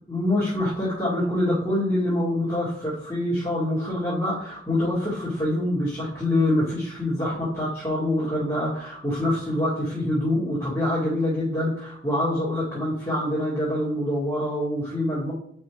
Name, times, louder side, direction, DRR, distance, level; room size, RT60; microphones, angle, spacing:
voice 1, 0.1-15.3, left 1 dB, 20° left, -8 dB, 2.0 m, -25 dB
5.1 x 4.7 x 4.6 m, 0.65 s
head